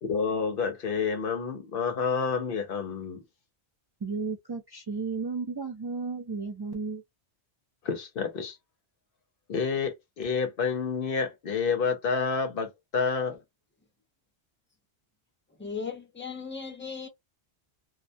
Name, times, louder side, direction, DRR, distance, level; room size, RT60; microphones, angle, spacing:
voice 1, 0.0-3.2 7.8-8.6 9.5-13.4, left 5 dB, 60° left, 0.7 m, -29 dB
voice 2, 4.0-7.0, right 4 dB, 40° right, 0.3 m, -33 dB
voice 3, 15.6-17.1, left 5 dB, 15° left, 0.5 m, -37 dB
2.3 x 2.1 x 2.6 m
omnidirectional pair, 1.1 m